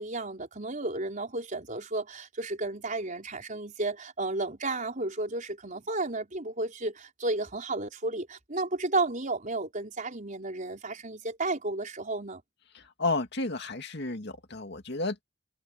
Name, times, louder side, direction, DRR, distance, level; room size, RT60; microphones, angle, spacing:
voice 1, 0.0-12.4, right 2 dB, 40° right, 4.8 m, -32 dB
voice 2, 12.7-15.2, left 3 dB, 60° left, 2.3 m, -32 dB
head